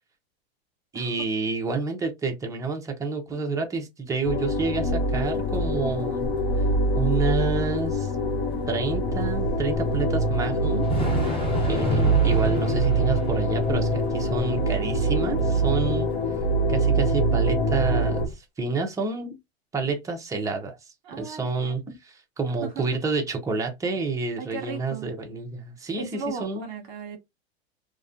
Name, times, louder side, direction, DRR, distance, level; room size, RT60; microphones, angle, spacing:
voice 1, 0.9-6.3 6.9-8.1 8.7-10.9 11.7-16.1 16.7-19.4 19.7-20.8 21.2-26.7, right 3 dB, 10° right, 0.5 m, -29 dB
sound 1, 4.3-18.3, right 1 dB, 75° left, 0.9 m, -24 dB
Thunder / Rain, 4.9-18.3, left 1 dB, 15° left, 1.1 m, -34 dB
voice 2, 21.0-21.8 22.6-22.8 24.4-25.2 25.9-27.2, right 5 dB, 50° right, 1.0 m, -36 dB
2.3 x 2.1 x 2.5 m
hypercardioid pair, 120°, 31 cm